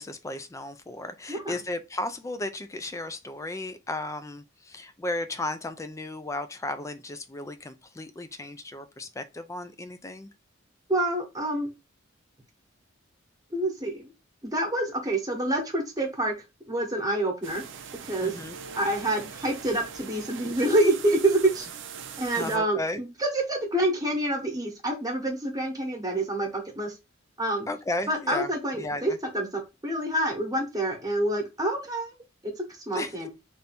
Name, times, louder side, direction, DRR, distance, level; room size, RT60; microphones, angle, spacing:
voice 1, 0.0-10.3 18.2-18.6 22.4-23.0 27.7-28.5 28.8-29.2 32.9-33.2, left 2 dB, 15° left, 0.4 m, -34 dB
voice 2, 10.9-11.7 13.5-14.1 14.5-16.3 16.7-17.6 18.1-18.3 18.7-21.7 22.2-26.9 27.4-27.7 28.1-29.5 29.8-32.1 32.6-33.3, right 1 dB, 20° right, 1.1 m, -27 dB
sound 1, 17.4-22.6, right 6 dB, 60° right, 0.6 m, -41 dB
3.4 x 2.7 x 4.1 m
head